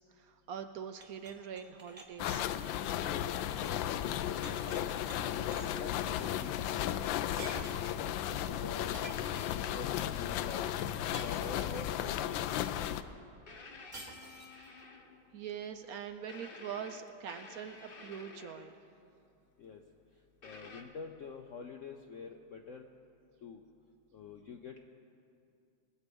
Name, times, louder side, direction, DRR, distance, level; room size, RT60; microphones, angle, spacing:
voice 1, 0.1-2.4 14.6-14.9 15.3-18.8, right 8 dB, 70° right, 9 dB, 0.9 m, -43 dB
sound 1, 0.9-3.8 4.1-5.2 5.5-5.9 7.0-7.1 7.4-8.0 8.9-9.8 11.1-11.9 13.9-14.7, right 2 dB, 30° right, 1.2 m, -50 dB
sound 2, 2.2-13.0, left 11 dB, 85° left, 1.3 m, -35 dB
voice 2, 3.0-3.8 4.4-7.1 7.5-7.7 8.0-9.0 9.3-10.7 11.2-12.4 19.6-19.8 20.4-22.9 23.4-23.6 24.1-24.9, left 5 dB, 60° left, 3 dB, 0.8 m, -47 dB
sound 3, 13.5-15.4 16.3-18.9 20.4-20.8, left 3 dB, 35° left, 1.0 m, -52 dB
23.0 x 8.2 x 5.3 m, 2.6 s
omnidirectional pair, 2.0 m